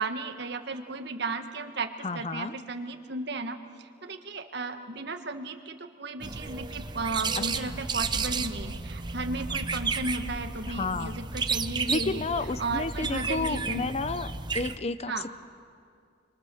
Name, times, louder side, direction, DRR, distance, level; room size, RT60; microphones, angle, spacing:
voice 1, 0.0-12.3 12.6-13.9 15.1-15.2, right 3 dB, 65° right, 6 dB, 1.5 m, -34 dB
voice 2, 2.0-2.6 7.4-7.8 10.7-11.2 11.9-14.3 14.5-15.3, left 3 dB, 35° left, 13 dB, 0.6 m, -31 dB
sound 1, 6.2-14.8, right 4 dB, 25° right, 0.7 m, -32 dB
29.5 x 23.5 x 7.1 m, 2.3 s
head